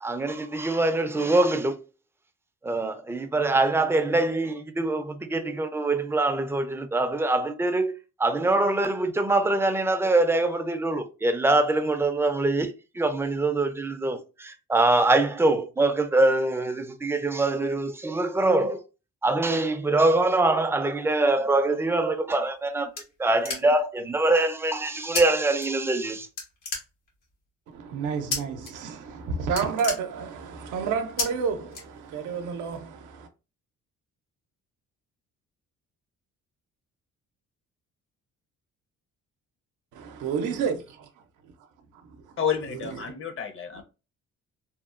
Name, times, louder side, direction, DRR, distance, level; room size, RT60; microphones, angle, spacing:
voice 1, 0.0-1.8 2.6-7.9 8.2-12.7 13.0-18.8 19.2-22.9 23.2-26.3, right 2 dB, 10° right, 0.3 m, -24 dB
sound 1, 22.3-24.0 25.1-25.2 25.6-26.1 26.4-27.3 28.3-28.7 29.0-29.2 29.4-30.6 31.2-31.3 31.7-32.4, left 4 dB, 90° left, 1.1 m, -32 dB
voice 2, 27.7-33.3 39.9-41.1 42.0-42.3 42.7-43.1 43.7-43.8, right 5 dB, 85° right, 0.5 m, -30 dB
voice 3, 42.4-43.8, left 7 dB, 45° left, 0.6 m, -30 dB
2.9 x 2.1 x 2.4 m
cardioid pair, 90°, 30 cm